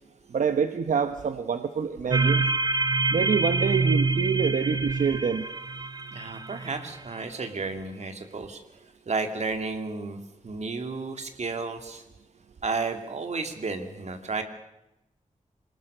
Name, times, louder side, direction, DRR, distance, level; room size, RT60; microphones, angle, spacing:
voice 1, 0.3-2.4 3.1-5.5, right 6 dB, 80° right, 9 dB, 1.0 m, -26 dB
sound 1, 2.1-6.9, right 3 dB, 30° right, 0.7 m, -26 dB
voice 2, 6.1-8.6 9.1-12.0 12.6-14.4, right 4 dB, 60° right, 6 dB, 2.6 m, -32 dB
26.5 x 19.0 x 6.7 m, 0.90 s
wide cardioid pair, 140°, 13 cm